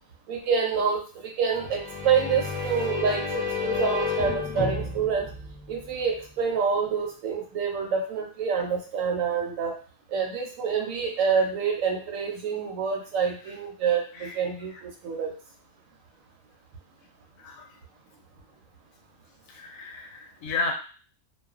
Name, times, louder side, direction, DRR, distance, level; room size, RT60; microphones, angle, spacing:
voice 1, 0.3-5.3 5.7-9.8 10.1-15.3, right 6 dB, 70° right, 2 dB, 0.9 m, -27 dB
sound 1, 1.5-6.2, left 5 dB, 30° left, 0.6 m, -31 dB
voice 2, 17.4-17.7 19.5-20.7, left 3 dB, 75° left, 1 dB, 1.0 m, -33 dB
2.4 x 2.2 x 2.4 m, 0.39 s
omnidirectional pair, 1.5 m